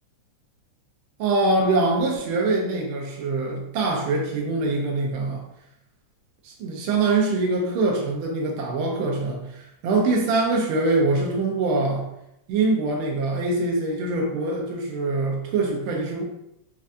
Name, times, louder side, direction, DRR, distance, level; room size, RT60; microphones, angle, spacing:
voice 1, 1.2-5.4 6.4-12.0 12.5-16.2, right 3 dB, 80° right, 0 dB, 1.2 m, -24 dB
6.9 x 2.4 x 2.6 m, 0.81 s
omnidirectional pair, 3.5 m